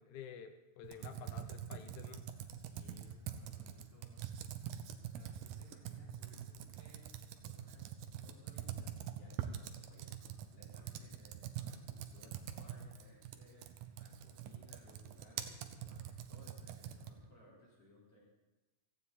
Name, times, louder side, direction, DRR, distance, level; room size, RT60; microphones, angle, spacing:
voice 1, 0.0-2.2, left 8 dB, 70° left, 7 dB, 2.2 m, -51 dB
Computer keyboard, 0.8-17.3, right 10 dB, 80° right, 2.6 m, -45 dB
voice 2, 2.5-4.3 5.0-7.2 7.4-18.2, left 1 dB, 40° left, -6 dB, 4.8 m, -63 dB
17.0 x 14.5 x 4.2 m, 1.1 s
omnidirectional pair, 4.0 m